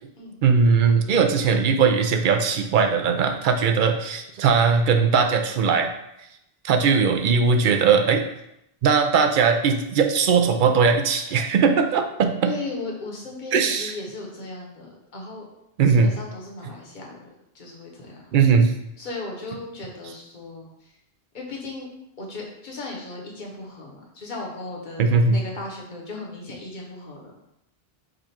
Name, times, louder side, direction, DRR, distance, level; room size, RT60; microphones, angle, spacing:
voice 1, 0.4-5.9 6.6-8.2 8.8-12.5 13.5-13.9 15.8-16.1 18.3-18.7 25.0-25.4, right 5 dB, 60° right, 5 dB, 0.6 m, -19 dB
voice 2, 12.4-15.4 15.9-17.3 17.5-18.2 19.0-20.9 21.3-21.9 22.2-27.3, left 3 dB, 50° left, -1 dB, 1.1 m, -36 dB
5.1 x 2.4 x 4.2 m, 0.82 s
omnidirectional pair, 1.0 m